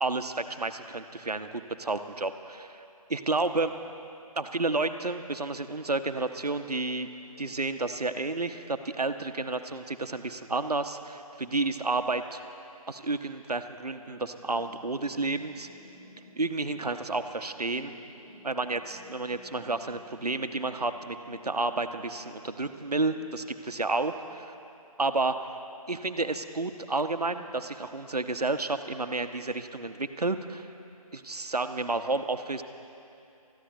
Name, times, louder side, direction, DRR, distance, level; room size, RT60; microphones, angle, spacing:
voice 1, 0.0-2.8 3.1-3.7 4.4-7.1 7.4-12.4 12.9-15.7 16.4-17.9 18.4-24.5 25.0-25.5 25.9-30.7 31.1-32.6, right 3 dB, 80° right, 9 dB, 0.8 m, -31 dB
sound 1, 14.2-23.4, left 2 dB, 15° left, 2.7 m, -53 dB
25.5 x 14.0 x 2.6 m, 2.7 s
figure-of-eight pair, 150°, 20 cm